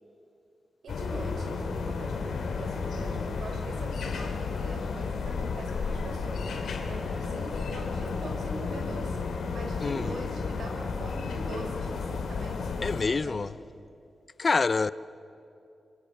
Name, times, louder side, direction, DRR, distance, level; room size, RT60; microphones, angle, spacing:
voice 1, 0.8-13.4, right 2 dB, 80° right, 6.5 m, -42 dB
sound 1, 0.9-13.0, left 4 dB, 80° left, 3.2 m, -32 dB
voice 2, 9.8-10.1 12.8-13.6 14.4-14.9, left 4 dB, 40° left, 0.6 m, -26 dB
27.0 x 25.5 x 8.2 m
wide cardioid pair, 100°, 0 cm